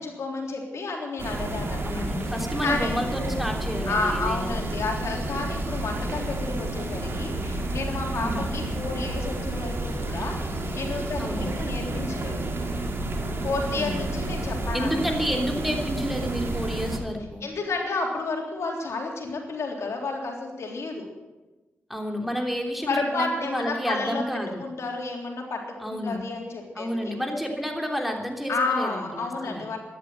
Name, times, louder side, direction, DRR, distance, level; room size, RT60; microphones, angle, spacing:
voice 1, 0.0-2.0 2.6-3.0 3.9-12.4 13.4-15.2 17.4-21.1 22.9-24.2 24.6-27.1 28.5-29.8, left 3 dB, 70° left, 1 dB, 3.6 m, -31 dB
sound 1, 1.2-17.0, right 1 dB, 50° right, 3.1 m, -30 dB
voice 2, 1.8-4.8 8.2-8.4 11.2-11.7 13.7-14.0 14.7-17.4 21.9-24.6 25.8-26.2 26.7-29.7, equal, 5° right, 2 dB, 3.2 m, -30 dB
13.5 x 11.0 x 9.0 m, 1.2 s
cardioid pair, 50°, 5 cm